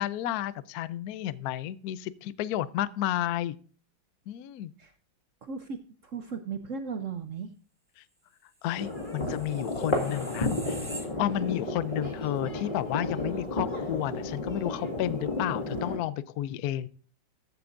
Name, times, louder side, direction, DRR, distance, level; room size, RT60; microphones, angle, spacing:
voice 1, 0.0-3.5 4.3-4.7 8.0-8.1 8.6-10.8 11.2-16.9, left 12 dB, 75° left, 17 dB, 0.8 m, -32 dB
voice 2, 5.4-7.5 10.7-10.8, right 5 dB, 70° right, 8 dB, 0.7 m, -37 dB
sound 1, 8.7-16.0, left 2 dB, 25° left, 2.0 m, -32 dB
sound 2, 8.7-11.7 12.0-12.2, right 1 dB, 10° right, 0.9 m, -45 dB
14.0 x 8.0 x 2.5 m, 0.42 s
omnidirectional pair, 2.2 m